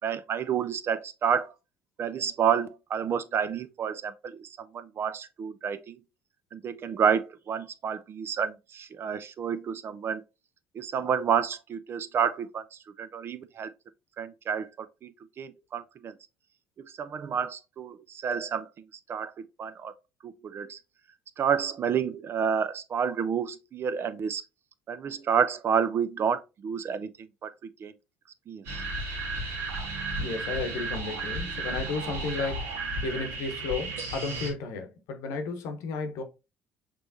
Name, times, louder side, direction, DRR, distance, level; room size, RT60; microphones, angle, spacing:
voice 1, 0.0-1.5 2.0-6.0 6.5-10.2 10.7-13.7 14.2-16.1 16.8-18.7 19.1-19.3 19.6-19.9 20.2-20.8 21.4-24.4 24.9-27.5 27.8-27.9 28.5-28.8, right 7 dB, 50° right, 0.5 m, -29 dB
sound 1, 28.6-34.5, right 2 dB, 75° right, 1.6 m, -33 dB
voice 2, 30.2-32.7 33.0-36.2, left 4 dB, 75° left, 0.9 m, -33 dB
6.1 x 3.2 x 2.6 m
hypercardioid pair, 60°, 6 cm